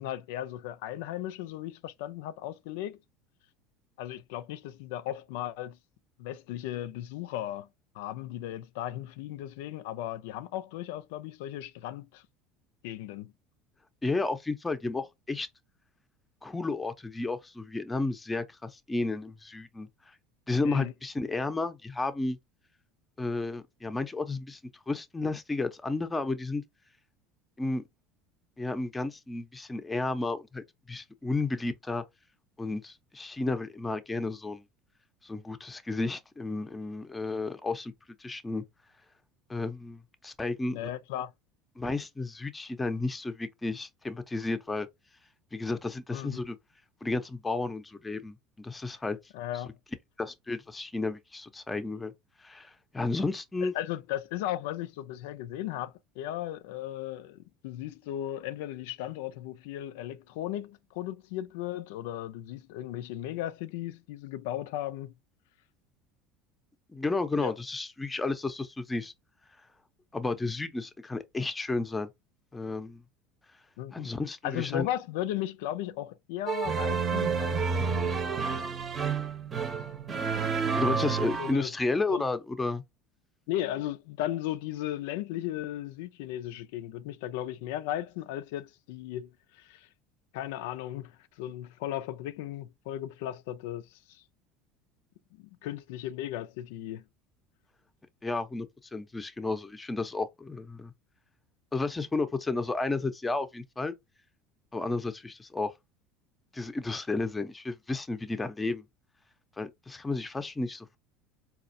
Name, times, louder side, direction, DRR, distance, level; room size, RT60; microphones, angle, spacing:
voice 1, 0.0-3.0 4.0-5.8 6.2-7.7 7.9-12.2 12.8-13.3 20.6-20.9 40.7-41.3 46.1-46.4 49.3-49.7 53.6-65.1 67.3-67.5 73.8-74.1 74.4-78.3 80.8-81.7 82.1-82.2 83.5-89.9 90.3-94.2 95.4-97.0, left 13 dB, 75° left, 0.4 m, -36 dB
voice 2, 14.0-15.5 16.4-19.9 20.5-22.4 23.2-24.6 24.9-26.6 27.6-27.8 28.6-32.0 32.6-34.6 35.2-37.9 38.2-38.6 39.5-40.9 41.8-44.9 45.5-46.6 47.0-49.2 50.2-52.1 52.4-53.7 66.9-69.1 70.1-72.1 72.5-73.0 73.9-74.9 80.8-82.8 98.2-100.9 101.7-103.9 104.7-105.7 106.5-108.8 109.6-111.0, left 3 dB, 15° left, 0.6 m, -32 dB
sound 1, 76.5-81.5, right 5 dB, 30° right, 0.7 m, -29 dB
4.1 x 2.4 x 2.6 m
supercardioid pair, 100°, 0 cm